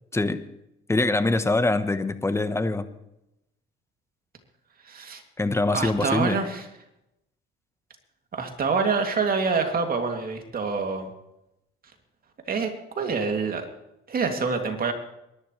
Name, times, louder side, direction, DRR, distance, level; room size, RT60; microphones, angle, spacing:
voice 1, 0.1-0.5 0.9-2.8 5.4-6.4, left 2 dB, 10° left, 11 dB, 1.2 m, -24 dB
voice 2, 4.9-5.2 5.7-6.6 8.3-11.1 12.5-12.7 13.0-13.7 14.1-14.9, right 4 dB, 45° right, 4 dB, 2.9 m, -26 dB
22.5 x 12.0 x 3.4 m, 0.87 s
supercardioid pair, 85°, 21 cm